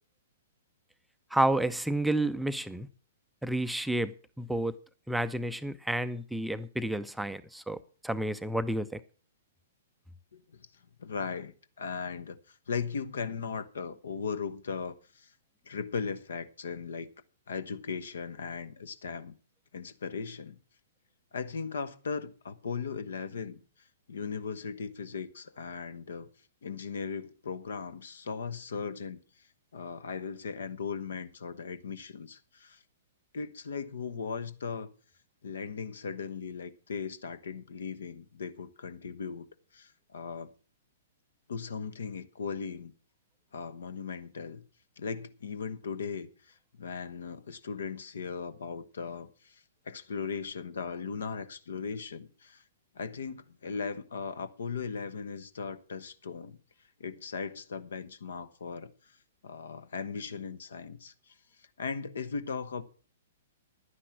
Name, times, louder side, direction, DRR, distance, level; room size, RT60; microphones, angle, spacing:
voice 1, 1.3-2.9 3.4-4.8 5.1-7.8 8.0-8.9, right 1 dB, ahead, 0.5 m, -30 dB
voice 2, 10.3-10.7 11.0-15.3 15.6-17.1 17.5-19.3 19.7-20.6 21.3-23.6 24.1-26.3 26.6-29.2 29.7-32.8 33.3-34.9 35.4-39.5 39.7-40.5 41.5-42.9 43.5-44.6 45.0-52.6 52.9-56.6 57.0-59.2 59.4-62.8, left 5 dB, 60° left, 1.0 m, -38 dB
11.5 x 9.9 x 6.0 m
figure-of-eight pair, 110°, 0 cm